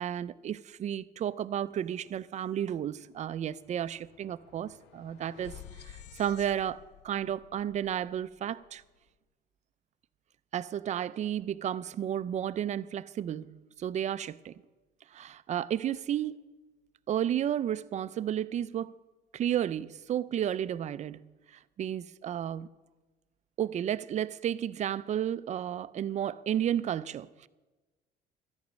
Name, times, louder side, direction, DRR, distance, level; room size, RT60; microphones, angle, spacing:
voice 1, 0.0-5.5 5.8-8.8 10.5-14.5 15.1-16.4 17.1-18.9 19.3-21.2 21.8-22.7 23.6-27.5, right 10 dB, 45° right, 0.5 m, -32 dB
sound 1, 2.3-2.4 2.7-9.0, left 9 dB, 90° left, 0.6 m, -53 dB
13.5 x 9.4 x 6.3 m
cardioid pair, 110°, 17 cm